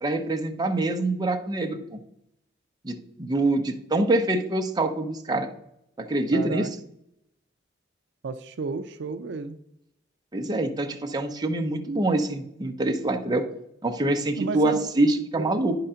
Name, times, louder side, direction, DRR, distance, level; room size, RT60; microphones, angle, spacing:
voice 1, 0.0-2.0 2.8-5.5 6.0-6.7 10.3-13.4 13.8-15.8, right 2 dB, 20° right, 4 dB, 0.7 m, -25 dB
voice 2, 6.3-6.7 8.2-9.6 14.4-14.8 15.4-15.5, right 4 dB, 65° right, 9 dB, 0.4 m, -32 dB
9.6 x 3.8 x 5.6 m, 0.78 s
head